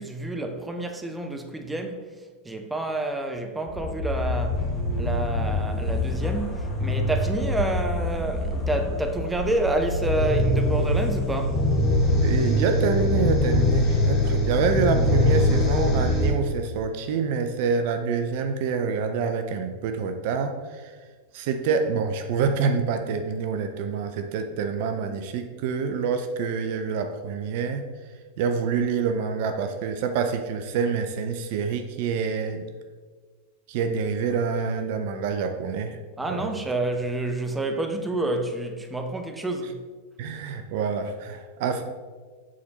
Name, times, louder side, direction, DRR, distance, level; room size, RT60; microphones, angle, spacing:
voice 1, 0.0-2.0 2.4-4.7 5.0-11.6 36.2-39.8, right 2 dB, 10° right, 0.8 m, -28 dB
sound 1, 3.7-16.3, left 1 dB, 20° left, 1.5 m, -24 dB
voice 2, 12.2-21.0 21.3-27.8 28.4-32.6 33.7-36.0 36.3-36.6 40.2-41.8, right 5 dB, 55° right, 0.5 m, -27 dB
7.4 x 4.3 x 4.1 m
hypercardioid pair, 95°, 0 cm